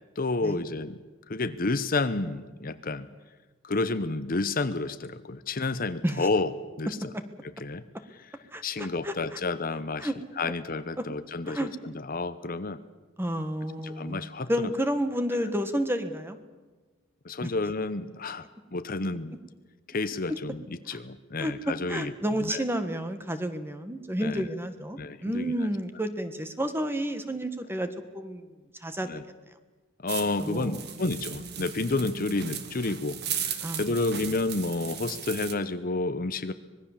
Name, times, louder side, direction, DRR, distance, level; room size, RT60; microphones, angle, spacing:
voice 1, 0.2-1.0 1.3-3.1 3.6-6.5 6.8-7.0 7.6-7.8 8.6-10.1 10.4-12.8 13.8-14.5 15.3-15.4 17.2-18.4 18.7-19.4 19.9-22.6 24.2-24.5 25.0-25.7 29.0-29.2 30.0-33.2 33.5-36.5, left 3 dB, 45° left, 12 dB, 0.9 m, -30 dB
voice 2, 8.5-9.4 10.0-10.1 11.5-11.7 13.2-16.4 20.9-21.0 21.4-27.9 28.1-28.5 28.8-29.1 30.4-30.8 31.6-31.7 33.6-33.9, equal, 10° right, 9 dB, 1.5 m, -31 dB
sound 1, 30.1-35.5, right 8 dB, 55° right, 1.8 m, -37 dB
25.0 x 20.0 x 7.4 m, 1.3 s
head